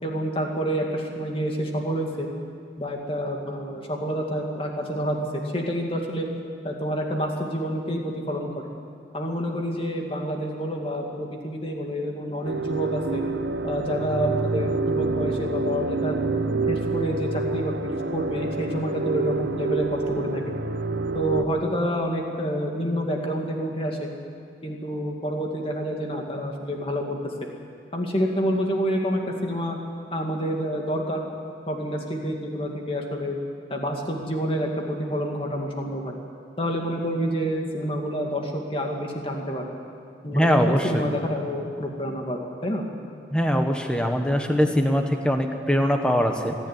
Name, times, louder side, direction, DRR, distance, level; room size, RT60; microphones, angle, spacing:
voice 1, 0.0-2.3 2.8-6.3 6.6-8.7 9.1-13.2 13.6-16.2 16.7-20.4 21.1-24.1 24.6-27.2 27.9-29.8 30.1-31.3 31.7-33.4 33.7-36.2 36.6-39.6 40.2-42.8, equal, 30° left, 1 dB, 2.4 m, -28 dB
sound 1, 12.5-21.4, right 3 dB, 70° right, 0.9 m, -27 dB
voice 2, 40.3-41.1 43.3-46.5, equal, 5° left, 4 dB, 1.3 m, -22 dB
26.5 x 10.5 x 9.8 m, 2.3 s
head